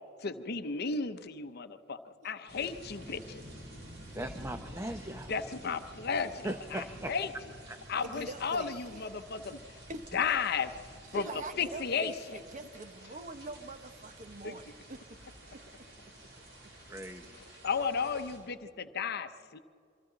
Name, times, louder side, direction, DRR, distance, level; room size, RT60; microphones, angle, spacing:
voice 1, 0.2-2.0 2.2-3.4 5.3-7.3 7.9-9.6 10.1-10.7 11.1-11.3 11.6-12.4 14.4-14.6 17.3-19.6, left 5 dB, 55° left, 10 dB, 0.8 m, -34 dB
sound 1, 2.5-18.4, right 1 dB, 65° right, 7.0 m, -50 dB
voice 2, 4.1-5.3 6.4-7.1 7.7-7.8 16.9-17.4, right 1 dB, 15° right, 7 dB, 0.7 m, -39 dB
voice 3, 8.0-9.1 9.9-10.3 11.1-15.2 15.5-15.6 17.2-17.4, right 2 dB, 40° right, 9 dB, 1.1 m, -44 dB
27.5 x 24.0 x 3.9 m, 2.4 s
head